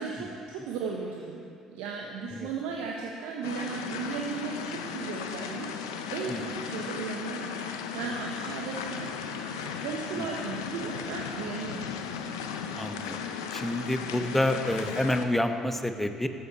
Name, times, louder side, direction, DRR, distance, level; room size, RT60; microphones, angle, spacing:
voice 1, 0.0-5.7 6.1-12.4, right 5 dB, 70° right, -1 dB, 1.3 m, -36 dB
sound 1, 3.4-15.3, left 6 dB, 80° left, 0.8 m, -36 dB
voice 2, 12.8-13.2 13.5-16.3, left 1 dB, 10° left, 7 dB, 1.2 m, -28 dB
14.0 x 13.5 x 4.3 m, 2.3 s
hypercardioid pair, 55°, 2 cm